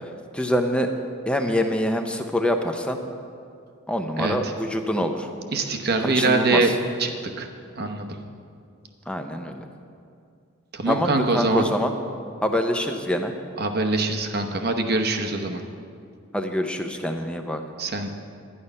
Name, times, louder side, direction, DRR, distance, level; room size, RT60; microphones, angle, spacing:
voice 1, 0.3-0.9 1.3-3.0 3.9-5.3 6.0-6.7 9.1-9.6 10.8-11.9 12.4-13.3 16.3-17.6, left 1 dB, 5° left, 5 dB, 0.6 m, -25 dB
voice 2, 4.2-4.5 5.5-6.7 7.0-7.1 7.4-7.5 7.8-8.2 10.7-11.7 13.6-15.6 17.8-18.1, right 3 dB, 50° right, 4 dB, 0.9 m, -23 dB
11.5 x 10.0 x 5.4 m, 2.3 s
head